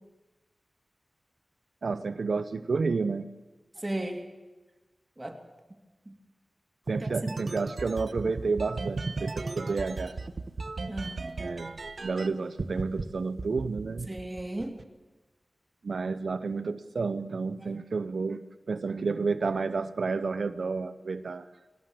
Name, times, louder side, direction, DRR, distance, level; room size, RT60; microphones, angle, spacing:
voice 1, 1.8-3.3 6.9-10.2 11.4-14.1 15.8-18.4 18.7-21.5, right 4 dB, 80° right, 12 dB, 0.6 m, -30 dB
voice 2, 3.8-4.3 5.2-5.4 6.1-6.2 7.0-7.1 7.4-7.5 10.9-11.4 14.1-14.8 17.7-17.8, right 1 dB, 20° right, 4 dB, 2.4 m, -35 dB
sound 1, 6.9-12.3 12.6-13.0 13.4-14.8, right 3 dB, 65° right, 1.1 m, -35 dB
19.0 x 18.0 x 7.6 m, 1.2 s
wide cardioid pair, 65°, 0 cm